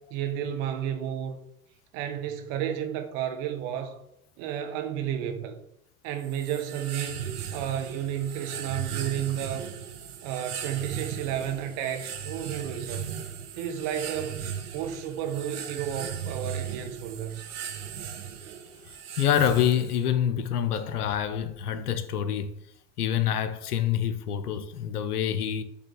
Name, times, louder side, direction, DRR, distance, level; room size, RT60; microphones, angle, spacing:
voice 1, 0.1-1.4 1.9-4.0 4.4-5.6 6.0-7.2 7.5-9.7 10.2-13.1 13.6-14.4 14.7-17.5, right 9 dB, 60° right, 1.1 m, -32 dB
sound 1, 6.2-20.1, right 8 dB, 80° right, 0.8 m, -37 dB
voice 2, 19.2-22.5 23.0-25.6, left 9 dB, 85° left, 0.6 m, -26 dB
7.2 x 3.4 x 3.8 m
hypercardioid pair, 75°, 44 cm